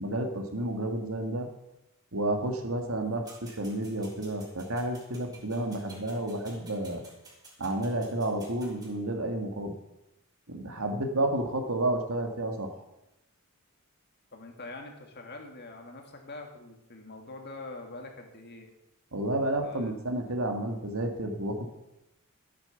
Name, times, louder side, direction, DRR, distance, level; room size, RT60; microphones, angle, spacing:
voice 1, 0.0-1.5 2.1-7.0 7.6-9.7 10.5-12.8 19.1-21.7, right 1 dB, 65° right, 5 dB, 2.0 m, -31 dB
sound 1, 3.2-8.9, right 2 dB, 20° right, 3.8 m, -53 dB
voice 2, 14.3-18.7 19.6-19.9, left 2 dB, 50° left, 3 dB, 2.4 m, -44 dB
13.5 x 8.9 x 7.1 m, 0.91 s
head